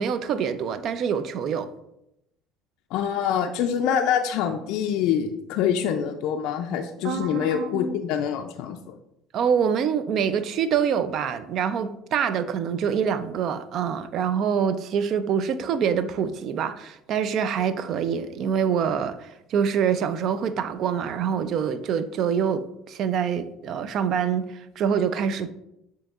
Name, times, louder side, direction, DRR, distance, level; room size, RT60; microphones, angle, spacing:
voice 1, 0.0-1.7 7.0-7.9 9.3-24.4 24.8-25.5, right 7 dB, 55° right, 0.4 m, -25 dB
voice 2, 2.9-8.8, left 8 dB, 70° left, 0.3 m, -25 dB
7.6 x 2.8 x 2.4 m
supercardioid pair, 80°, 0 cm